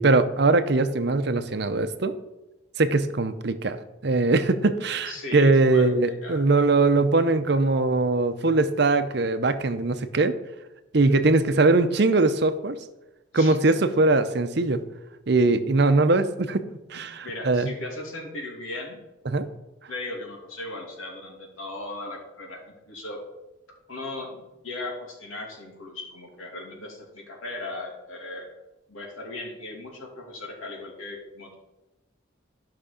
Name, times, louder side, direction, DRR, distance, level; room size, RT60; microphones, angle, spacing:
voice 1, 0.0-2.1 2.8-3.8 4.0-10.3 10.9-12.8 13.3-14.8 15.3-16.6 16.9-17.7 19.3-19.5, right 3 dB, 55° right, 10 dB, 0.7 m, -21 dB
voice 2, 5.1-6.3 11.0-11.4 13.3-13.6 17.2-19.0 19.9-23.2 23.9-28.5 28.9-31.6, left 2 dB, 90° left, 0 dB, 2.7 m, -37 dB
12.5 x 5.8 x 5.1 m, 0.99 s
head